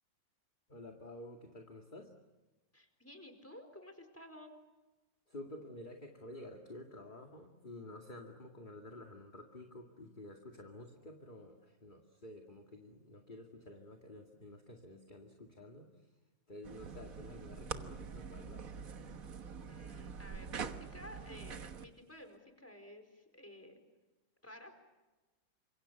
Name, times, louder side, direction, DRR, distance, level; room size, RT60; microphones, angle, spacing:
voice 1, 0.7-2.1 5.3-16.1 16.5-18.7, left 1 dB, 25° left, 3 dB, 2.3 m, -51 dB
voice 2, 2.7-4.5 19.7-23.8 24.4-24.9, left 1 dB, 5° left, 5 dB, 4.3 m, -54 dB
sound 1, 16.6-21.9, right 5 dB, 50° right, 1.6 m, -45 dB
30.0 x 26.5 x 7.1 m, 1.2 s
omnidirectional pair, 2.0 m